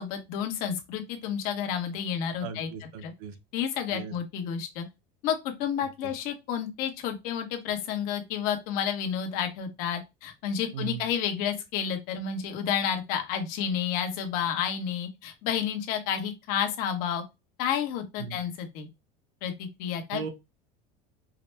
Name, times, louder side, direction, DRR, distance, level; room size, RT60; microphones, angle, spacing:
voice 1, 0.0-2.7 3.0-3.1 3.5-4.9 5.2-17.2 17.6-18.9 19.4-20.2, left 8 dB, 55° left, 1.1 m, -30 dB
voice 2, 2.4-3.4 3.9-4.1 5.8-6.1 10.7-11.1 18.2-18.4 20.1-20.3, right 7 dB, 85° right, 0.8 m, -38 dB
4.9 x 2.0 x 3.3 m
cardioid pair, 165°, 17 cm